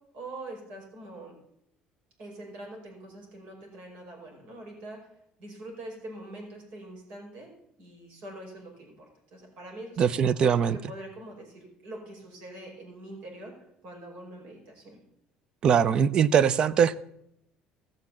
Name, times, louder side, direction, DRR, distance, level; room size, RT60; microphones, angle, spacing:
voice 1, 0.1-1.4 2.2-5.1 5.4-7.5 7.8-10.3 10.6-15.0, right 1 dB, 60° right, 5.0 m, -44 dB
voice 2, 10.0-10.8 15.6-16.9, right 7 dB, 35° right, 0.5 m, -21 dB
16.5 x 6.5 x 7.2 m
cardioid pair, 170°, 3 cm